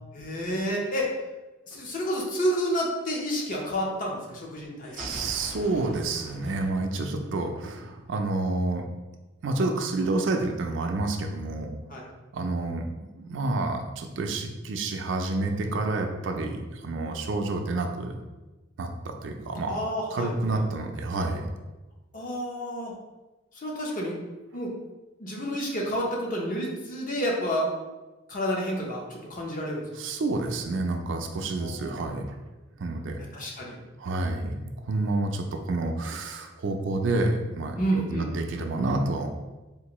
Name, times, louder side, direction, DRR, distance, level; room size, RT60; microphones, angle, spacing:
voice 1, 0.1-1.1 1.7-4.9 11.9-12.0 19.7-20.6 22.1-22.9 23.6-24.2 24.5-24.7 25.2-27.7 28.3-29.8 31.6-32.2 33.3-33.8 37.7-38.3, equal, 40° left, -1 dB, 0.6 m, -30 dB
sound 1, 4.8-7.7, left 1 dB, 60° left, 1.1 m, -42 dB
voice 2, 5.0-8.8 9.4-11.7 12.3-12.8 13.2-18.2 18.8-19.8 20.1-21.4 30.0-32.2 32.8-33.2 34.0-34.5 34.9-37.8 38.1-39.3, right 2 dB, 65° right, 4 dB, 0.4 m, -29 dB
3.6 x 2.5 x 3.0 m, 1.1 s
head